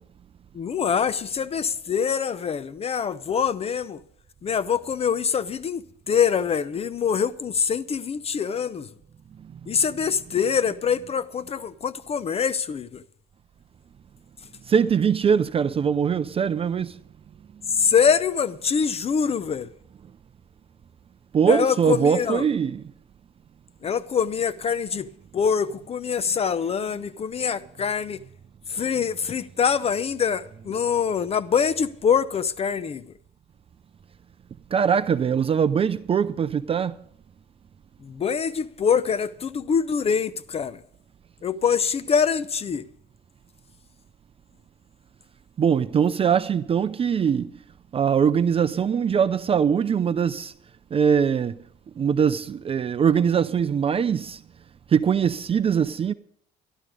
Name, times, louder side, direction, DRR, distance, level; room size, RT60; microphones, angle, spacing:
voice 1, 0.5-4.0 4.4-8.9 9.7-13.0 17.7-19.7 21.4-22.5 23.8-25.1 25.3-28.2 28.7-33.0 38.0-40.8 41.4-42.8, left 7 dB, 35° left, 0.6 m, -24 dB
voice 2, 14.7-17.0 21.3-22.8 34.7-37.0 45.6-47.5 47.9-50.5 50.9-51.6 52.0-54.4 54.9-56.1, right 7 dB, 35° right, 0.5 m, -22 dB
13.5 x 12.5 x 4.9 m
cardioid pair, 110°, 17 cm